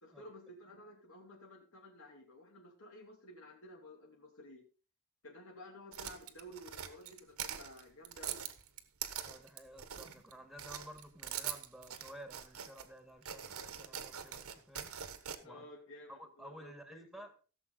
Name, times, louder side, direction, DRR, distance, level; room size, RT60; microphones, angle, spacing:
voice 1, 0.0-4.7 5.2-8.5 10.1-10.2 15.4-17.2, left 1 dB, 70° left, -1 dB, 2.8 m, -54 dB
sound 1, 5.9-10.3 10.6-12.9 13.2-15.4, right 9 dB, 85° right, 1.4 m, -43 dB
voice 2, 9.2-14.9 15.4-15.7 16.1-17.3, equal, ahead, 6 dB, 1.7 m, -53 dB
16.5 x 7.4 x 4.0 m, 0.35 s
head